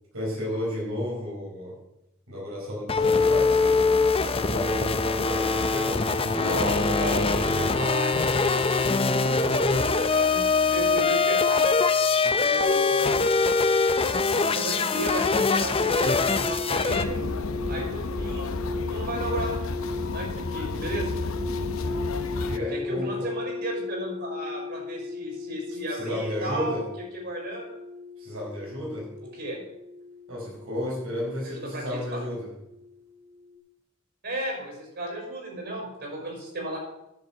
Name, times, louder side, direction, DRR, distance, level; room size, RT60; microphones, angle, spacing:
voice 1, 0.1-1.7 2.3-3.9 4.2-6.0 22.2-23.3 25.9-26.8 28.2-29.1 30.3-32.5, left 1 dB, 80° right, -4 dB, 5.0 m, -32 dB
sound 1, 2.9-17.0, left 4 dB, 25° left, 0.6 m, -23 dB
voice 2, 6.3-8.3 8.9-11.7 12.3-13.4 14.3-17.2 17.7-18.6 18.9-19.5 20.1-21.1 22.7-27.7 29.3-29.6 31.4-32.2 34.2-36.8, right 1 dB, 55° right, 0 dB, 6.0 m, -34 dB
sound 2, 15.6-32.9 33.1-33.5, left 4 dB, 10° right, 2.3 m, -37 dB
sound 3, 16.9-22.6, left 2 dB, 75° left, 0.8 m, -32 dB
11.0 x 7.2 x 7.9 m, 0.86 s
head